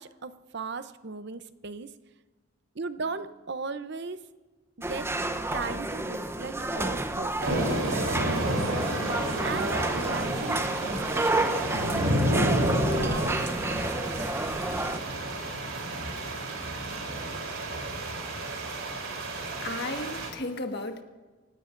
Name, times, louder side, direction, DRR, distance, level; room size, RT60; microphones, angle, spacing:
voice 1, 0.0-1.9 2.8-4.2 4.9-5.1 5.5-7.3 7.7-8.6 9.4-12.6 12.9-14.3, right 4 dB, 55° right, 12 dB, 0.7 m, -37 dB
sound 1, 4.8-15.0, right 2 dB, 10° right, 0.7 m, -30 dB
sound 2, 7.4-20.3, right 1 dB, 85° right, 3.6 m, -30 dB
voice 2, 19.6-21.0, left 2 dB, 55° left, 5 dB, 1.6 m, -34 dB
28.5 x 16.5 x 2.6 m, 1.3 s
head